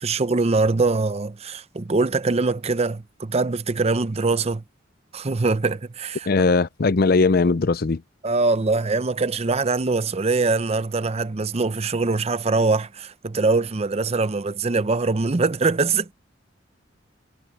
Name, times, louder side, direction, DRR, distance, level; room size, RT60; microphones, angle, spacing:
voice 1, 0.0-4.6 5.1-6.5 8.2-16.1, right 3 dB, 35° right, 0.6 m, -23 dB
voice 2, 6.3-8.0, left 3 dB, 50° left, 0.6 m, -19 dB
head